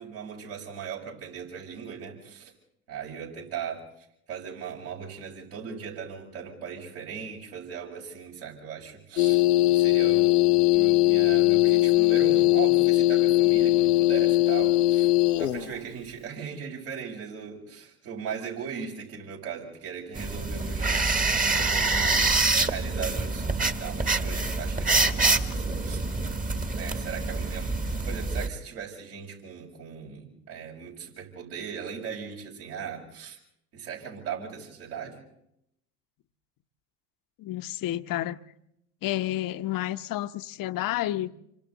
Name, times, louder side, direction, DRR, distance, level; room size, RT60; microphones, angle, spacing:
voice 1, 0.0-2.5 2.9-3.8 4.3-9.4 9.7-15.1 15.4-21.0 21.4-26.0 26.7-33.4 33.7-35.2, right 7 dB, 65° right, -2 dB, 7.0 m, -38 dB
sound 1, 9.2-15.7, left 19 dB, 80° left, 1.2 m, -20 dB
sound 2, 20.1-28.5, right 3 dB, 15° right, 1.6 m, -26 dB
voice 2, 37.4-38.4 39.0-41.3, left 14 dB, 45° left, 11 dB, 1.0 m, -30 dB
27.5 x 25.0 x 4.1 m, 0.77 s
hypercardioid pair, 75°, 47 cm